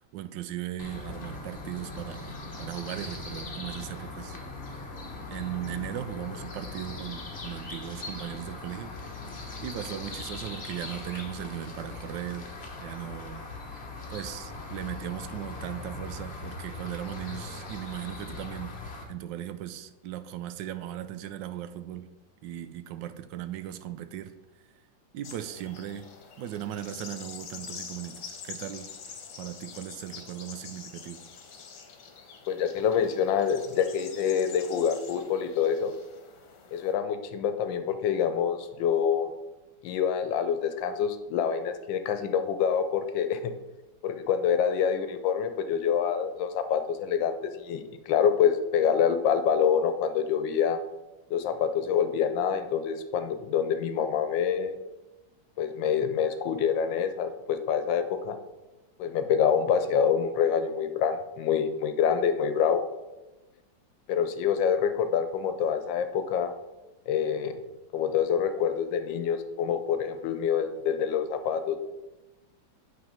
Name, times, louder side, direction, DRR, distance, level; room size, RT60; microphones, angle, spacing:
voice 1, 0.1-4.4 5.3-8.9 9.6-12.5 12.8-13.4 14.1-18.7 19.1-22.1 22.4-24.3 25.1-26.1 26.4-28.9 29.4-31.2, right 11 dB, 80° right, 12 dB, 1.2 m, -37 dB
sound 1, 0.8-19.0, left 3 dB, 40° left, 1.2 m, -40 dB
sound 2, 25.2-36.9, left 6 dB, 65° left, 1.5 m, -46 dB
voice 2, 32.5-35.9 36.7-39.3 39.8-43.5 44.0-50.8 51.3-54.8 55.6-58.3 59.0-62.8 64.1-66.5 67.1-67.6 67.9-71.8, left 7 dB, 80° left, 9 dB, 1.4 m, -26 dB
8.8 x 3.9 x 5.5 m, 1.1 s
omnidirectional pair, 2.0 m